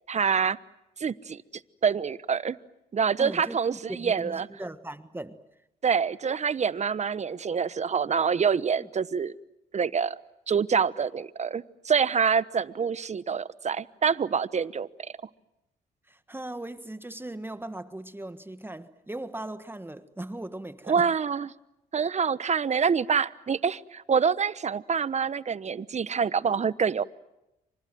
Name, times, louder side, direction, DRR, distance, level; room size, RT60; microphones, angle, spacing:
voice 1, 0.1-0.6 1.0-1.4 1.8-2.6 2.9-4.5 5.8-9.3 9.7-10.2 10.5-15.1 20.9-21.5 21.9-27.0, right 6 dB, 40° right, 17 dB, 1.0 m, -26 dB
voice 2, 3.2-5.4 8.8-8.9 16.1-21.1 26.5-26.6, right 1 dB, 10° right, 11 dB, 1.5 m, -39 dB
29.5 x 25.5 x 7.7 m, 0.92 s
supercardioid pair, 65°, 18 cm